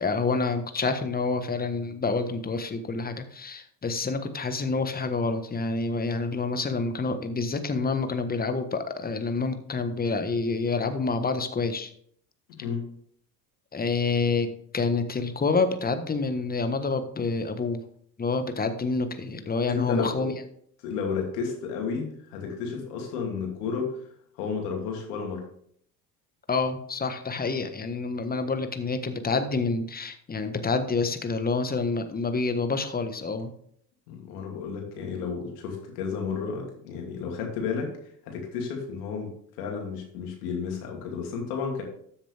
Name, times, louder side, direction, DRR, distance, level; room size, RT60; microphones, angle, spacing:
voice 1, 0.0-11.9 13.7-17.8 18.2-20.3 26.5-33.5, left 4 dB, 20° left, 9 dB, 1.3 m, -28 dB
voice 2, 12.6-12.9 19.7-20.3 20.8-24.0 24.4-25.4 34.1-37.9 38.3-39.3 39.6-41.8, left 5 dB, 70° left, 1 dB, 2.9 m, -32 dB
13.0 x 7.3 x 3.5 m, 0.65 s
figure-of-eight pair, 65°, 48 cm